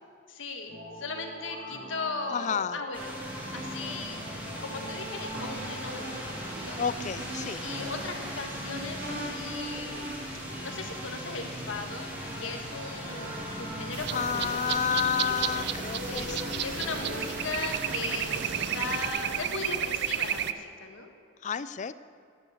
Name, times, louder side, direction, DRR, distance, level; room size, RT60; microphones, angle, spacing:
voice 1, 0.3-3.2 3.5-4.2 4.6-6.8 7.6-10.1 10.6-12.1 12.4-14.7 16.0-16.3 16.6-21.1, left 3 dB, 90° left, 4 dB, 1.5 m, -38 dB
sound 1, 0.7-17.7, equal, 85° right, 3.1 m, -41 dB
voice 2, 2.3-2.8 6.8-7.6 14.1-16.6 21.4-21.9, left 7 dB, 40° left, 15 dB, 0.4 m, -30 dB
sound 2, 2.9-19.1, equal, 10° right, 2.4 m, -39 dB
sound 3, 13.9-20.5, right 10 dB, 60° right, 0.5 m, -32 dB
11.5 x 9.8 x 7.2 m, 2.3 s
head